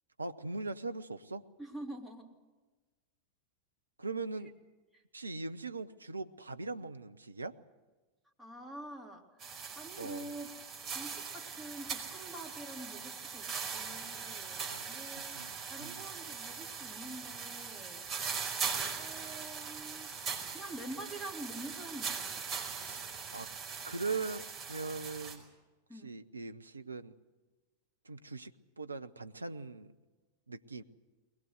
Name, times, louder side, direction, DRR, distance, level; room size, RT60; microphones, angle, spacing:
voice 1, 0.2-1.4 4.0-4.5 5.1-7.5 10.0-10.3 14.7-14.8 15.3-15.5 15.8-16.0 22.8-23.5 23.8-25.4 26.0-27.1 28.1-28.5 28.8-29.9 30.5-30.8, right 3 dB, 80° right, 9 dB, 0.8 m, -40 dB
voice 2, 1.6-2.3 4.9-5.0 8.4-9.4 9.7-10.5 10.8-15.4 15.7-18.1 19.0-20.1 20.5-22.3 25.9-26.1, right 1 dB, ahead, -1 dB, 3.2 m, -46 dB
sound 1, 9.4-25.4, right 6 dB, 30° right, 5.2 m, -40 dB
21.5 x 20.0 x 8.1 m, 1.2 s
figure-of-eight pair, 90°, 0 cm